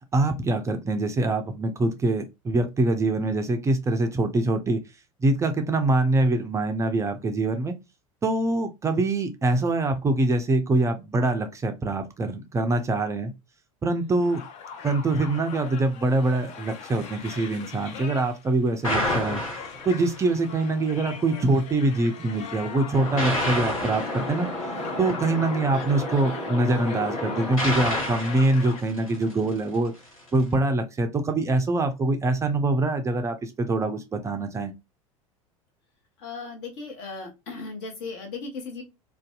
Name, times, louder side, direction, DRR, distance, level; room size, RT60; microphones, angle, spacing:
voice 1, 0.1-4.8 5.2-7.7 8.2-13.3 13.8-14.4 14.8-19.4 19.9-24.5 25.0-29.9 30.3-34.7, right 2 dB, 15° right, 0.4 m, -24 dB
sound 1, 14.2-28.8, left 6 dB, 40° left, 0.5 m, -41 dB
sound 2, 18.8-20.3 22.9-29.5, left 1 dB, 80° left, 0.9 m, -30 dB
voice 2, 36.2-38.8, left 4 dB, 55° left, 1.0 m, -36 dB
2.5 x 2.2 x 2.3 m
figure-of-eight pair, 75°, 17 cm